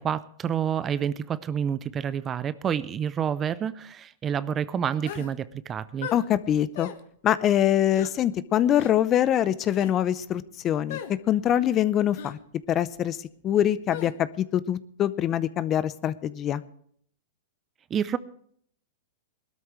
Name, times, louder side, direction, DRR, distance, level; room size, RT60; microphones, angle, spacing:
voice 1, 0.0-6.1 17.9-18.2, right 8 dB, 25° right, 0.5 m, -28 dB
sound 1, 5.0-5.3 6.0-6.3 6.7-7.0 7.9-8.1 8.7-8.9 9.7-10.0 10.9-11.1 12.1-12.4 13.9-14.1, left 9 dB, 65° left, 1.4 m, -37 dB
voice 2, 6.1-6.9 7.2-11.0 11.3-12.4 12.7-13.2 13.4-16.6, left 11 dB, 30° left, 0.6 m, -24 dB
20.0 x 13.0 x 3.2 m
hypercardioid pair, 125°, 0 cm